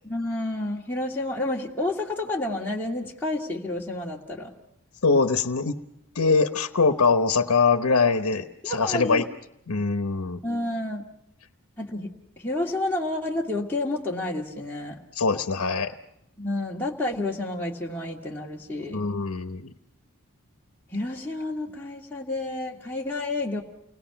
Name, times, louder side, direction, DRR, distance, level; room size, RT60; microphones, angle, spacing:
voice 1, 0.0-4.5 8.6-9.3 10.4-11.0 11.8-12.1 12.4-15.0 16.4-19.1 20.9-23.6, left 2 dB, 10° left, -4 dB, 1.9 m, -30 dB
voice 2, 5.0-5.8 6.1-9.3 9.7-10.4 15.1-15.9 18.9-19.7, left 4 dB, 90° left, 7 dB, 1.0 m, -23 dB
29.5 x 20.0 x 5.9 m, 0.79 s
head